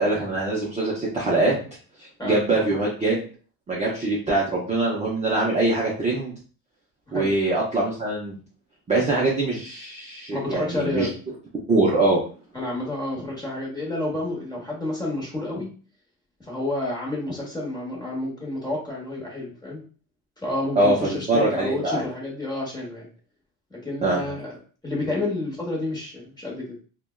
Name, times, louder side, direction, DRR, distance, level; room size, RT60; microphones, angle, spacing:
voice 1, 0.0-1.6 2.0-3.2 3.7-6.3 7.1-8.4 8.9-11.1 11.7-12.2 20.8-22.0 24.0-24.2, right 2 dB, 15° right, -5 dB, 0.5 m, -23 dB
voice 2, 2.2-2.6 7.1-7.4 10.3-11.1 12.5-15.7 16.4-19.8 20.4-23.1 23.7-24.6 24.8-26.7, left 2 dB, 10° left, -3 dB, 0.9 m, -30 dB
3.2 x 2.2 x 2.2 m, 0.40 s
cardioid pair, 140°, 41 cm